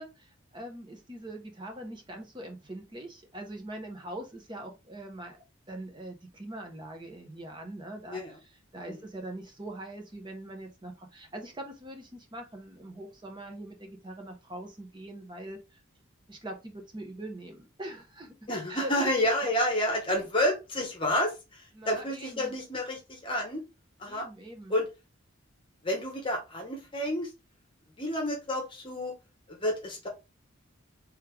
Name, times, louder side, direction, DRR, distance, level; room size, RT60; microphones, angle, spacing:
voice 1, 0.0-15.8 16.3-19.1 19.4-19.5 20.1-20.2 21.7-22.5 24.0-24.8, right 1 dB, 20° right, 4 dB, 0.8 m, -42 dB
voice 2, 18.5-23.6 24.0-24.3 24.7-24.9 25.8-27.3 28.0-29.1 29.5-30.1, left 1 dB, 25° left, 1 dB, 1.0 m, -30 dB
3.5 x 3.2 x 3.3 m, 0.26 s
head